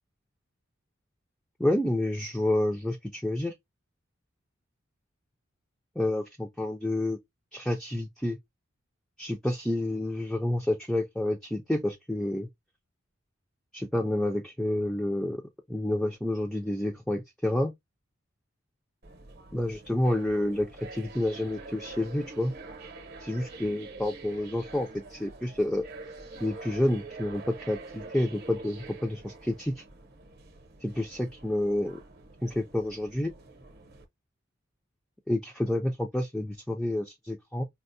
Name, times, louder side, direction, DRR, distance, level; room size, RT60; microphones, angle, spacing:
voice 1, 1.6-3.5 6.0-7.2 7.5-8.4 9.2-12.5 13.7-15.4 15.7-17.7 19.5-22.5 23.2-25.8 26.4-29.8 30.8-32.0 32.4-33.3 35.3-37.6, left 1 dB, ahead, 0.3 m, -29 dB
sound 1, 19.0-34.0, right 3 dB, 50° right, 0.7 m, -46 dB
4.3 x 2.0 x 2.5 m
head